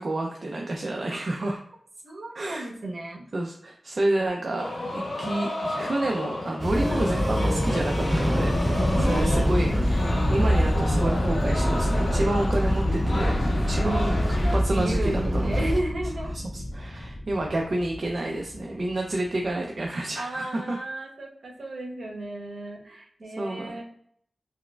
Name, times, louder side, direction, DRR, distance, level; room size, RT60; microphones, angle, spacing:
voice 1, 0.0-1.6 2.3-2.7 3.3-15.7 16.3-20.8 23.4-23.8, right 1 dB, 55° right, 0 dB, 0.4 m, -29 dB
voice 2, 2.0-3.2 8.9-9.6 13.8-14.4 14.7-16.3 20.1-23.8, right 1 dB, 70° right, -1 dB, 1.0 m, -33 dB
sound 1, 4.6-14.6, left 1 dB, 75° left, 0.8 m, -33 dB
sound 2, 6.6-15.8, equal, 5° right, 0.9 m, -26 dB
sound 3, 8.1-19.9, left 1 dB, 30° left, 0.5 m, -29 dB
4.6 x 2.1 x 2.2 m, 0.66 s
wide cardioid pair, 80°, 0 cm